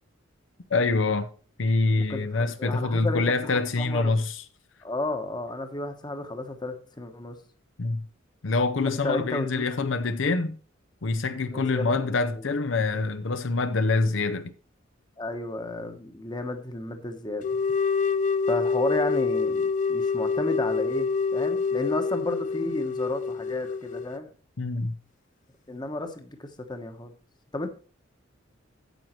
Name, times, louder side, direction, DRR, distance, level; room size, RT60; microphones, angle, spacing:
voice 1, 0.7-1.3 1.6-4.4 7.8-8.0 8.4-10.5 11.0-14.5 24.6-25.0, left 3 dB, 70° left, 0.7 m, -25 dB
voice 2, 1.9-4.1 4.8-7.4 9.0-9.8 11.5-12.0 12.3-12.4 15.2-17.6 18.5-24.3 25.7-27.1 27.5-27.7, left 2 dB, 20° left, 1.1 m, -32 dB
sound 1, 17.4-24.2, left 5 dB, 40° left, 0.5 m, -26 dB
9.2 x 7.8 x 4.5 m
head